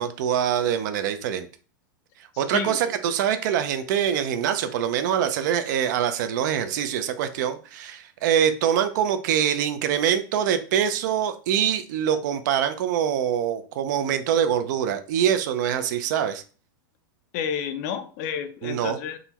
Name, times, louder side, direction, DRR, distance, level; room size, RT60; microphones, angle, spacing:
voice 1, 0.0-1.5 2.4-16.4 18.6-19.0, right 9 dB, 55° right, 10 dB, 0.4 m, -24 dB
voice 2, 17.3-19.2, left 8 dB, 45° left, 9 dB, 0.4 m, -30 dB
3.7 x 2.1 x 2.8 m, 0.39 s
supercardioid pair, 150°, 12 cm